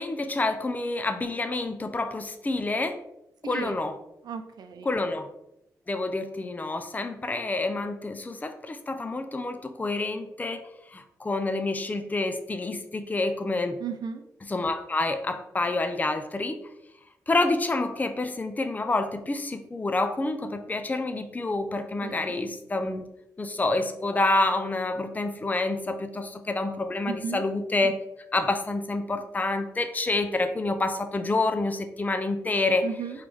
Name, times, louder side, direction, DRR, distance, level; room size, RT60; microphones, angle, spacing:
voice 1, 0.0-3.0 3.5-4.0 4.8-5.3 5.9-10.6 10.9-13.8 14.5-16.6 17.3-23.1 23.4-28.0 28.3-32.8, left 2 dB, 25° left, 8 dB, 0.5 m, -28 dB
voice 2, 3.4-3.8 4.2-5.0 13.8-14.2 22.0-22.3 27.1-27.4 32.8-33.2, right 6 dB, 75° right, 7 dB, 0.6 m, -35 dB
4.6 x 3.2 x 3.5 m, 0.85 s
cardioid pair, 55°, 7 cm